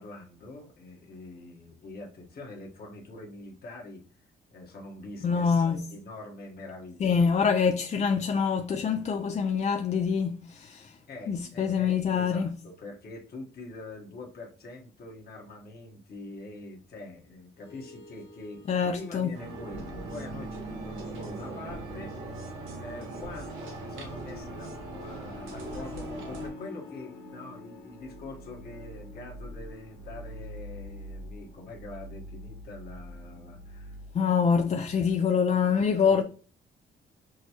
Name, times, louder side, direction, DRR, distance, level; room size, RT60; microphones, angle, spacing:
voice 1, 0.0-4.0 4.5-8.1 11.1-22.5 22.7-34.0 34.4-34.7 35.4-36.2, left 2 dB, 50° left, 1.3 m, -44 dB
voice 2, 5.2-5.8 7.0-10.9 11.3-12.5 18.7-19.4 34.1-36.2, left 6 dB, 35° left, 0.4 m, -25 dB
sound 1, 17.6-34.1, left 1 dB, 85° left, 1.2 m, -46 dB
sound 2, 19.3-26.5, right 3 dB, 85° right, 0.9 m, -40 dB
6.3 x 2.2 x 2.9 m
cardioid pair, 90°, 20 cm